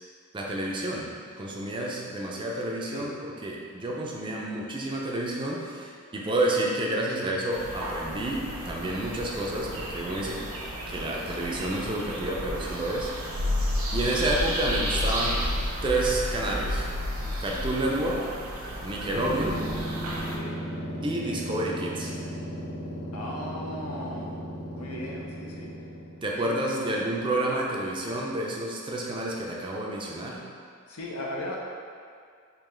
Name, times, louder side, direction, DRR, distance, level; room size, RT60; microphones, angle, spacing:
voice 1, 0.3-10.4 10.9-13.1 13.9-15.5 15.8-16.9 17.4-18.3 18.8-19.7 21.0-22.1 26.2-30.5, right 1 dB, 25° right, -2 dB, 0.4 m, -29 dB
sound 1, 7.5-20.4, equal, 85° right, 0.7 m, -32 dB
sound 2, 19.0-26.3, equal, 40° left, 0.6 m, -36 dB
voice 2, 20.3-20.6 23.1-24.3 24.8-25.7 26.4-27.2 30.9-31.6, left 1 dB, 90° left, -2 dB, 0.6 m, -37 dB
3.8 x 2.9 x 3.1 m, 2.2 s
head